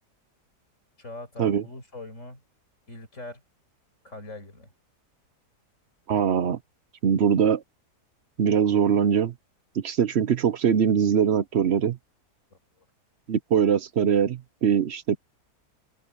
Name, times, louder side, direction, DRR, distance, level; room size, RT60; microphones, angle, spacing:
voice 1, 1.0-2.4 2.9-3.4 4.0-4.7 12.5-12.9, left 2 dB, 45° left, 7.8 m, -42 dB
voice 2, 6.1-6.6 7.0-7.6 8.4-9.3 9.8-12.0 13.3-15.2, right 8 dB, 55° right, 0.8 m, -22 dB
open air
omnidirectional pair, 1.7 m